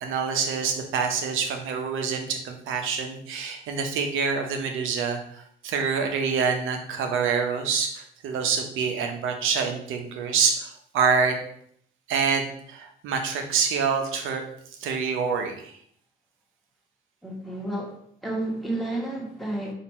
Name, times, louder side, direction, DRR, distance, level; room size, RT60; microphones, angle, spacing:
voice 1, 0.0-11.4 12.1-14.4 14.8-15.7, right 5 dB, 90° right, 4 dB, 0.8 m, -26 dB
voice 2, 17.2-17.9 18.2-19.7, right 1 dB, ahead, -3 dB, 1.3 m, -31 dB
4.1 x 2.6 x 4.2 m, 0.64 s
cardioid pair, 90°, 20 cm